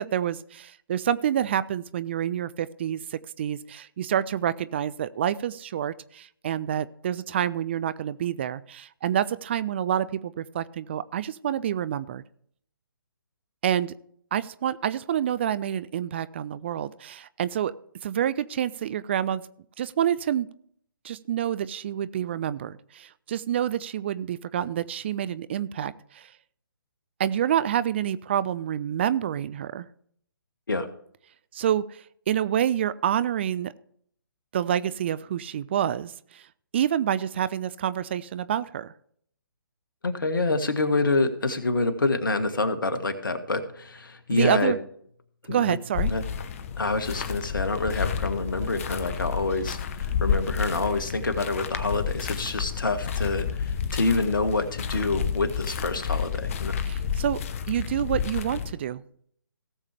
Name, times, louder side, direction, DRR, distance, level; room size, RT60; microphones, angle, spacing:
voice 1, 0.0-12.2 13.6-13.9 14.3-17.7 18.0-19.4 19.8-20.5 21.0-26.3 27.2-29.9 31.5-33.7 34.5-36.5 36.7-38.9 44.3-44.8 45.5-46.1 56.9-57.4 57.7-59.0, right 10 dB, 30° right, 16 dB, 0.4 m, -28 dB
voice 2, 40.0-44.7 45.4-45.8 46.1-46.2 46.8-56.7, left 3 dB, 70° left, 8 dB, 1.7 m, -27 dB
sound 1, 45.9-58.7, left 7 dB, 40° left, 0.9 m, -30 dB
17.5 x 7.2 x 3.3 m, 0.64 s
figure-of-eight pair, 140°, 11 cm